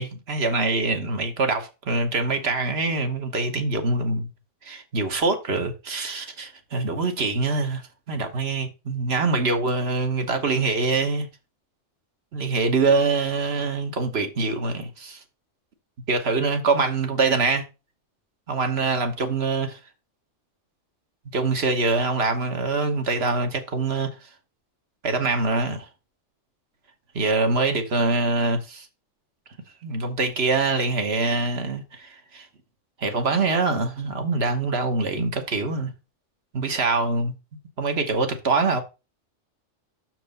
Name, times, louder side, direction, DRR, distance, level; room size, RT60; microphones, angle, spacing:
voice 1, 0.0-4.3 4.6-7.8 8.1-11.3 12.3-15.2 16.1-17.6 18.5-19.8 21.3-24.1 25.0-25.8 27.1-28.9 29.8-32.5 33.0-35.9 36.5-37.3 37.8-38.8, right 3 dB, 55° right, 1.4 m, -24 dB
6.7 x 4.6 x 5.2 m
omnidirectional pair, 1.3 m